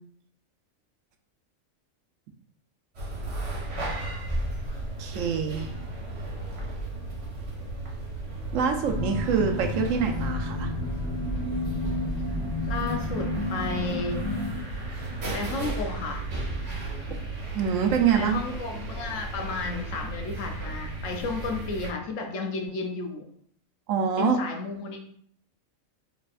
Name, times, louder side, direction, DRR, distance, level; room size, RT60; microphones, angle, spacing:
sound 1, 2.9-21.9, right 2 dB, 55° right, 1.3 m, -35 dB
voice 1, 5.0-5.7 8.5-10.7 17.5-18.4 23.9-24.4, right 7 dB, 80° right, 4 dB, 1.0 m, -25 dB
sound 2, 8.8-14.5, left 2 dB, 15° left, 1.2 m, -31 dB
voice 2, 12.7-14.3 15.3-16.2 18.1-23.2 24.2-25.0, left 3 dB, 70° left, 4 dB, 1.0 m, -32 dB
4.4 x 3.4 x 2.4 m, 0.62 s
omnidirectional pair, 1.4 m